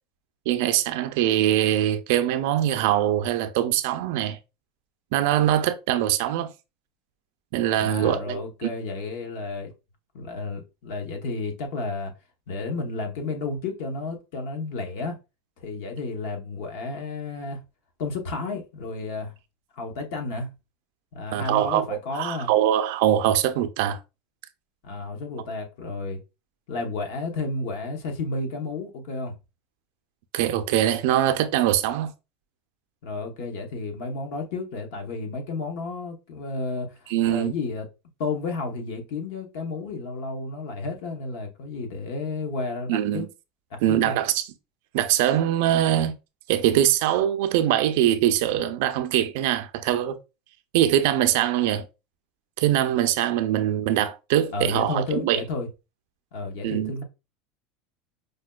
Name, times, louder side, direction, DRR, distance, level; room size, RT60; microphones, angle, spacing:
voice 1, 0.5-4.4 5.1-6.5 7.5-8.4 21.3-24.0 30.3-32.1 37.1-37.5 42.9-43.3 43.8-44.5 44.9-46.1 46.5-50.2 50.7-51.9 52.6-55.4 56.6-56.9, right 12 dB, 60° right, 0.4 m, -22 dB
voice 2, 7.8-9.7 10.1-12.1 12.5-15.2 15.6-17.6 18.0-19.3 19.7-20.5 21.1-22.5 24.8-26.2 26.7-29.3 33.0-37.0 37.3-37.9 38.2-43.3 43.7-44.2 54.5-55.7 56.3-57.0, left 3 dB, 60° left, 0.8 m, -32 dB
4.9 x 2.2 x 2.2 m
supercardioid pair, 165°, 0 cm